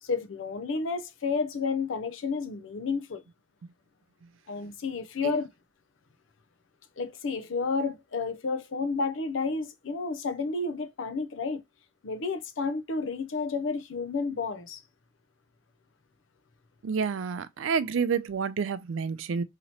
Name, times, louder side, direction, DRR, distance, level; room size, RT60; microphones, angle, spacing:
voice 1, 0.0-3.2 4.5-5.5 7.0-11.6 12.0-14.8, left 4 dB, 85° left, 0.6 m, -31 dB
voice 2, 16.8-19.4, right 6 dB, 90° right, 0.4 m, -29 dB
2.9 x 2.8 x 4.2 m
head